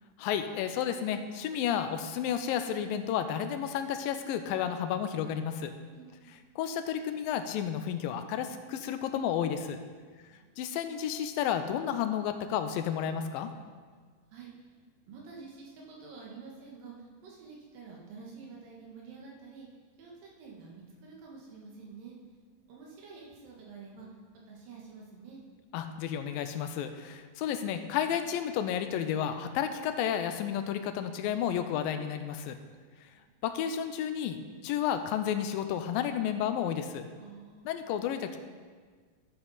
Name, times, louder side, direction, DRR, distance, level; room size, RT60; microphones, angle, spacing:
voice 1, 0.2-5.7 6.6-9.8 10.6-13.5 25.7-32.6 33.4-34.4 34.6-37.0 37.7-38.4, left 9 dB, 90° left, 8 dB, 2.4 m, -31 dB
voice 2, 5.9-6.4 10.2-10.6 14.3-14.7 15.1-19.7 20.0-22.1 22.7-25.4 33.1-33.3 37.2-37.8, right 4 dB, 75° right, -3 dB, 3.3 m, -49 dB
12.5 x 7.7 x 4.2 m, 1.5 s
omnidirectional pair, 4.0 m